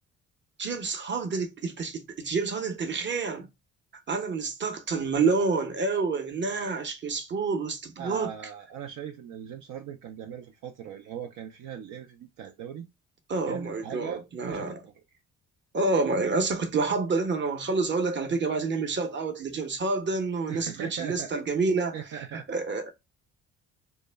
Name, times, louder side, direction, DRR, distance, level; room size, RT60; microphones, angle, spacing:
voice 1, 0.6-3.5 4.1-8.3 13.3-14.8 15.7-22.0 22.3-22.9, right 4 dB, 35° right, 0.8 m, -28 dB
voice 2, 8.0-12.8 13.5-14.9 20.5-21.3 21.9-22.6, right 9 dB, 65° right, 0.5 m, -39 dB
2.1 x 2.0 x 3.3 m
supercardioid pair, 65°, 34 cm